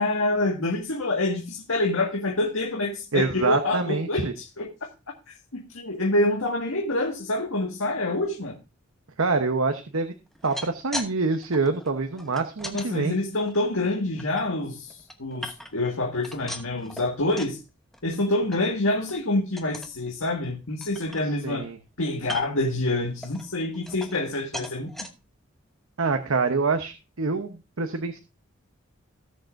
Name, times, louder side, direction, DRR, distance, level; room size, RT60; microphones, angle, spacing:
voice 1, 0.0-4.7 5.3-8.6 12.7-17.6 18.0-21.7 22.0-24.9, left 2 dB, 85° left, 1.8 m, -27 dB
voice 2, 3.1-4.3 9.2-10.1 10.4-13.2 21.4-21.8 26.0-28.2, right 4 dB, 85° right, 1.0 m, -26 dB
sound 1, 10.3-11.1 11.4-12.9 13.4-14.4 14.9-15.9 16.2-17.6 17.9-18.2 18.5-18.6 19.0-19.2 19.6-20.0 20.4-20.5 20.8-21.6 22.2-22.7 23.2-24.3 24.5-25.1 25.7-25.8 26.1-26.2, left 1 dB, ahead, 0.9 m, -38 dB
17.5 x 6.6 x 2.6 m
head